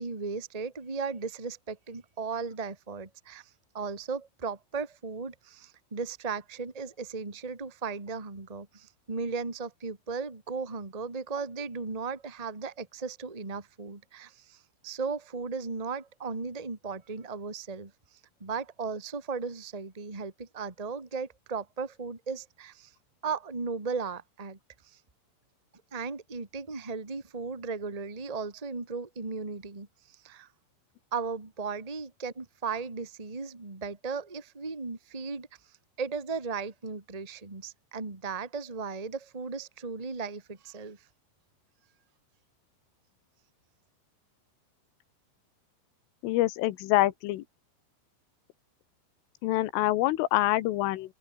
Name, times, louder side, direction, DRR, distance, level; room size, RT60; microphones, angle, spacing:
voice 1, 0.0-17.9 18.4-22.9 23.2-24.6 24.8-25.0 25.9-30.5 31.1-35.5 36.0-41.0, right 4 dB, 20° right, 1.1 m, -36 dB
voice 2, 46.2-47.5 49.4-51.1, left 16 dB, 85° left, 3.8 m, -26 dB
open air
omnidirectional pair, 5.6 m